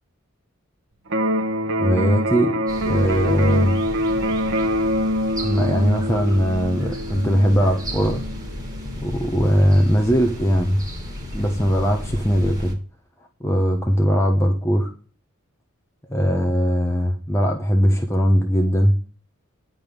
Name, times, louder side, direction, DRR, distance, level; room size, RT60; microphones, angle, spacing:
Electric guitar, 1.1-9.0, equal, 60° right, 1.2 m, -25 dB
voice 1, 1.8-3.8 5.4-8.2 9.0-10.8 11.3-12.8 13.4-14.9 16.1-19.0, equal, 15° left, 1.2 m, -20 dB
sound 1, 2.7-12.7, equal, 20° right, 4.0 m, -34 dB
10.5 x 5.4 x 7.9 m
head